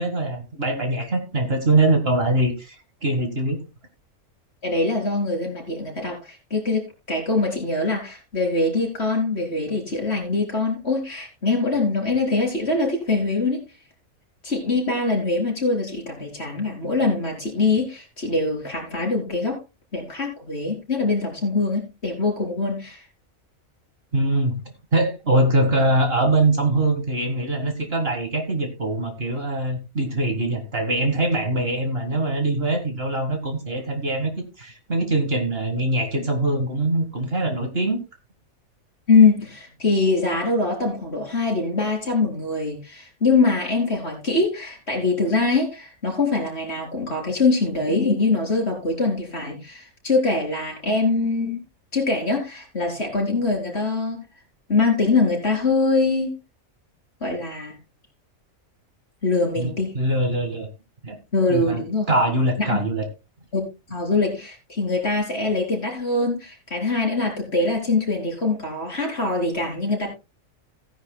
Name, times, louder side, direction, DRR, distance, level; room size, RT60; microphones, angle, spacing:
voice 1, 0.0-2.8 3.0-3.6 24.1-24.6 24.9-38.0 59.6-60.7 61.0-61.2 61.5-61.8 62.1-63.1, right 2 dB, 45° right, 5 dB, 1.9 m, -23 dB
voice 2, 4.6-13.6 14.4-19.6 19.9-23.0 39.1-51.6 51.9-54.2 54.7-56.3 57.2-57.8 59.2-59.9 61.3-62.1 62.6-62.8 63.5-70.1, left 3 dB, 50° left, 0 dB, 4.5 m, -23 dB
17.0 x 10.0 x 2.2 m, 0.27 s
omnidirectional pair, 1.5 m